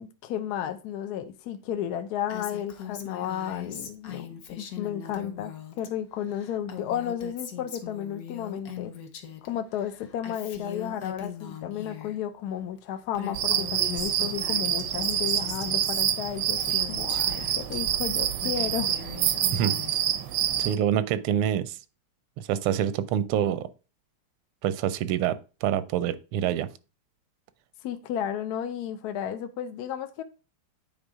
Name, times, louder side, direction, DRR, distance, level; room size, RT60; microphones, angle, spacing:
voice 1, 0.0-8.9 9.4-19.0 27.8-30.2, left 9 dB, 75° left, 0.9 m, -33 dB
Female speech woman speaking, 2.3-5.9 6.2-9.5 9.8-12.2 12.8-12.9 13.1-17.8 18.2-20.1, left 8 dB, 55° left, 1.2 m, -41 dB
sound 1, 13.3-20.8, right 10 dB, 75° right, 1.0 m, -27 dB
voice 2, 20.6-21.8 22.4-23.7 24.6-26.7, right 10 dB, 90° right, 1.5 m, -26 dB
9.0 x 3.6 x 4.8 m
omnidirectional pair, 2.4 m